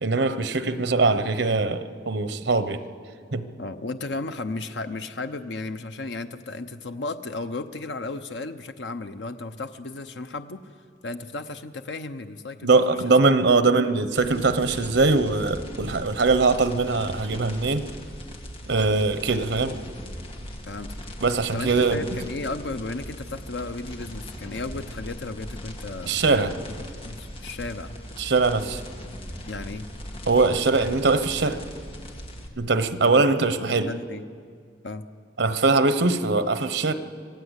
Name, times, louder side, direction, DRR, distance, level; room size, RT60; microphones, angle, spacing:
voice 1, 0.0-2.8 3.3-3.4 12.6-17.9 18.7-19.8 21.2-22.0 26.1-26.5 28.2-28.8 30.3-31.6 32.6-33.9 35.4-36.9, right 3 dB, 85° right, 11 dB, 1.0 m, -22 dB
voice 2, 3.6-10.7 11.0-13.2 20.5-20.9 21.5-26.2 26.7-27.9 29.5-29.9 33.0-33.4 33.6-34.2 34.8-35.0, left 3 dB, 85° left, 8 dB, 0.8 m, -34 dB
sound 1, 14.2-32.5, equal, 30° left, 2.2 m, -39 dB
25.5 x 16.5 x 8.2 m, 2.2 s
head